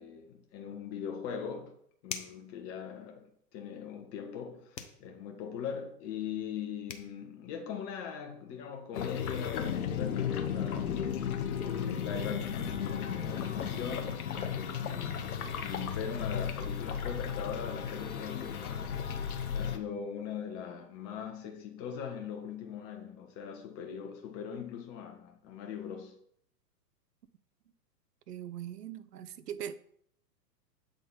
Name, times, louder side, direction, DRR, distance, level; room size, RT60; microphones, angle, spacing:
voice 1, 0.0-1.7 2.0-11.0 11.5-19.0 19.5-26.1, left 7 dB, 30° left, 1.2 m, -41 dB
sound 1, 2.0-2.5 4.7-5.0 6.5-6.6 6.9-7.1, left 6 dB, 90° left, 0.9 m, -41 dB
sound 2, 8.9-19.8, left 8 dB, 60° left, 0.9 m, -34 dB
voice 2, 28.3-29.8, right 10 dB, 75° right, 0.7 m, -41 dB
7.5 x 4.0 x 3.9 m
figure-of-eight pair, 115°, 49 cm